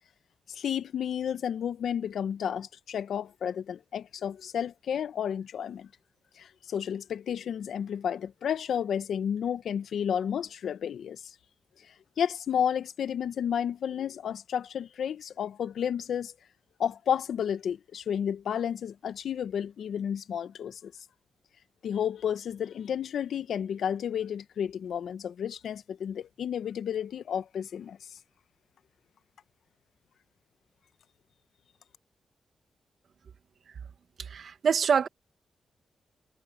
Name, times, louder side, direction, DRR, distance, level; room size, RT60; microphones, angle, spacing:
voice 1, 0.5-5.9 6.4-11.3 12.2-16.3 16.8-20.9 21.8-28.0, left 8 dB, 75° left, 1.2 m, -31 dB
voice 2, 34.2-35.1, right 6 dB, 65° right, 2.1 m, -25 dB
supercardioid pair, 45°, 0 cm